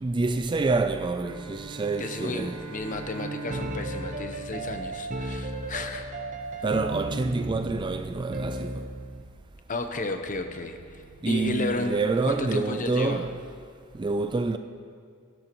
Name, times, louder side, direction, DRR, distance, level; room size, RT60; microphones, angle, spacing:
voice 1, 0.0-2.7 6.6-8.9 11.2-13.3 13.9-14.6, right 3 dB, 20° right, 0.4 m, -27 dB
Bowed string instrument, 1.2-5.9, right 3 dB, 85° right, 0.8 m, -42 dB
voice 2, 2.0-6.1 6.5-6.6 9.7-12.0 12.2-13.2, left 2 dB, 40° left, 0.9 m, -33 dB
sound 1, 3.2-9.3, right 2 dB, 35° right, 0.7 m, -34 dB
17.0 x 12.5 x 3.0 m
head